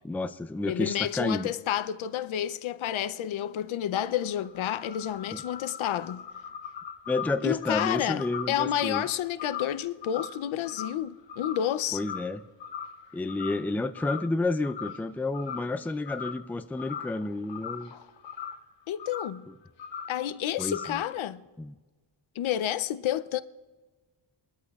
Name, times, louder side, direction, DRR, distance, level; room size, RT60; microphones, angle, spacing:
voice 1, 0.0-1.5 5.3-5.4 7.1-9.0 11.9-12.4 13.1-17.9 19.5-19.6 20.6-21.0 21.6-21.8, left 2 dB, 5° left, 0.3 m, -30 dB
voice 2, 0.7-6.3 7.4-12.0 17.9-18.1 18.9-19.5 20.1-21.4 22.4-23.4, left 11 dB, 90° left, 0.6 m, -30 dB
sound 1, 4.0-11.7 11.9-12.4 12.6-13.7 13.9-14.3 14.6-15.1 15.3-16.5 16.7-18.7 19.0-19.4 19.8-20.2 20.6-21.1, left 7 dB, 65° left, 1.1 m, -40 dB
22.0 x 12.5 x 2.4 m
wide cardioid pair, 120°, 46 cm